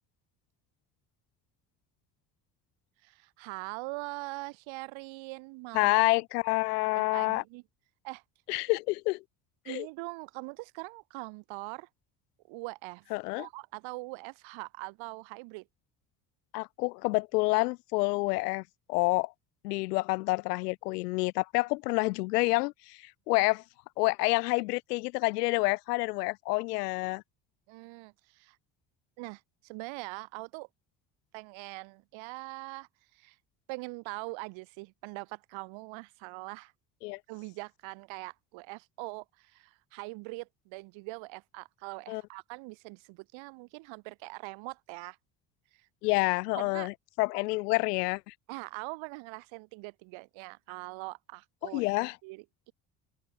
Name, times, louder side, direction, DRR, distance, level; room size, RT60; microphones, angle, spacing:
voice 1, 3.0-5.9 6.9-7.6 8.0-8.2 9.7-11.9 12.5-13.1 13.4-15.7 27.7-28.6 29.2-30.7 31.3-33.4 33.7-36.7 37.3-45.2 45.7-45.9 46.5-46.9 48.5-52.7, right 26 dB, 80° right, 3.7 m, -42 dB
voice 2, 5.7-7.4 8.5-9.2 9.7-9.9 13.1-13.5 16.5-18.6 18.9-19.3 19.6-23.6 24.0-27.2 37.0-37.2 42.1-42.2 46.0-48.3 51.7-52.2, left 24 dB, 90° left, 3.6 m, -28 dB
open air
supercardioid pair, 70°, 45 cm